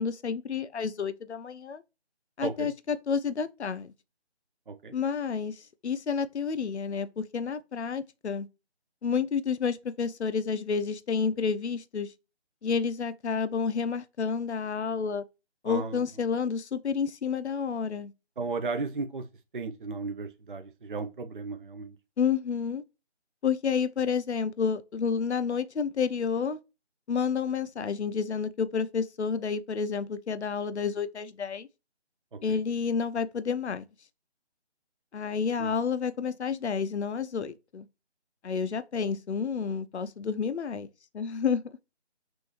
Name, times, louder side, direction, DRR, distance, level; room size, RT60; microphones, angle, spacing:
voice 1, 0.0-1.8 2.4-3.9 4.9-8.5 9.0-12.1 12.6-15.2 15.6-18.1 22.2-22.8 23.4-26.6 27.1-31.7 32.4-33.8 35.1-37.9 38.4-40.9 41.1-41.6, left 6 dB, 75° left, 0.6 m, -30 dB
voice 2, 15.7-16.0 18.4-19.2 19.5-22.0 32.5-32.6 35.6-35.7, right 4 dB, 50° right, 0.6 m, -35 dB
6.2 x 2.6 x 3.1 m
figure-of-eight pair, 160°, 34 cm